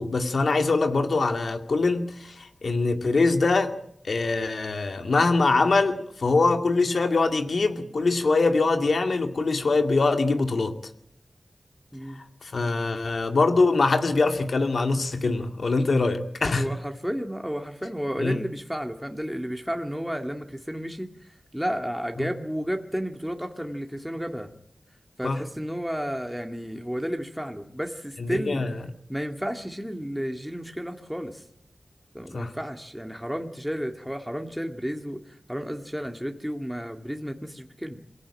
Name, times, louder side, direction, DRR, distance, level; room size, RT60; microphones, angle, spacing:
voice 1, 0.0-3.7 4.0-10.8 12.4-16.7 18.2-18.4 22.2-22.3 25.2-25.4 28.2-28.7 32.3-32.5, left 3 dB, 75° left, 6 dB, 2.2 m, -23 dB
voice 2, 16.6-21.1 21.5-24.5 25.2-28.6 29.1-31.4 32.1-38.0, equal, 5° right, 4 dB, 2.1 m, -32 dB
23.0 x 17.5 x 8.8 m, 0.71 s
wide cardioid pair, 65°, 0 cm